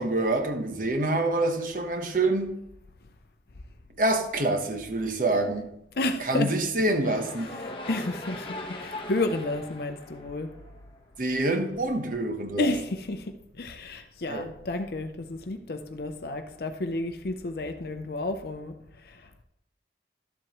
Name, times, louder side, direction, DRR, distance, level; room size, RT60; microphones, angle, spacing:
voice 1, 0.0-2.6 4.0-5.7 6.2-7.5 11.2-12.7 14.3-14.5, right 2 dB, 45° right, 0.9 m, -26 dB
voice 2, 5.9-6.5 7.5-10.5 12.6-19.4, left 2 dB, 55° left, 0.6 m, -31 dB
sound 1, 6.8-11.0, left 1 dB, 30° left, 0.9 m, -40 dB
12.0 x 7.7 x 3.0 m
head